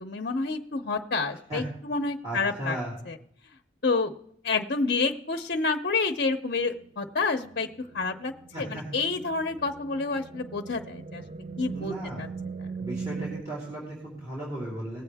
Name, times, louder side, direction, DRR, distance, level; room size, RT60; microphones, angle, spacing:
voice 1, 0.0-2.8 3.1-3.2 3.8-4.1 4.4-7.7 7.9-8.3 8.6-11.2 11.6-12.3, left 4 dB, 55° left, 5 dB, 0.7 m, -28 dB
voice 2, 2.2-2.9 8.5-8.8 11.7-12.2 12.8-15.0, right 1 dB, 20° right, -6 dB, 3.6 m, -36 dB
sound 1, 6.7-13.4, right 5 dB, 35° right, 0.4 m, -40 dB
19.5 x 8.1 x 3.5 m, 0.68 s
head